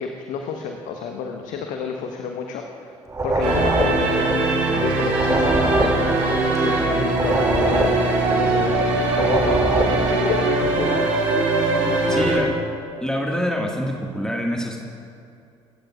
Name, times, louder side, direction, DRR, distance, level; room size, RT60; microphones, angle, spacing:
voice 1, 0.0-2.9 3.2-4.4 4.7-6.2 6.5-7.9 8.4-9.5 9.9-11.1 11.8-12.5, left 6 dB, 55° left, 3 dB, 1.2 m, -30 dB
sound 1, 3.1-10.5, right 1 dB, 20° right, 2.5 m, -24 dB
sound 2, 3.4-12.4, right 3 dB, 60° right, 3.3 m, -21 dB
voice 2, 12.1-12.5 13.0-14.8, equal, 5° left, -1 dB, 1.8 m, -25 dB
24.5 x 15.5 x 2.4 m, 2.5 s
figure-of-eight pair, 50°, 16 cm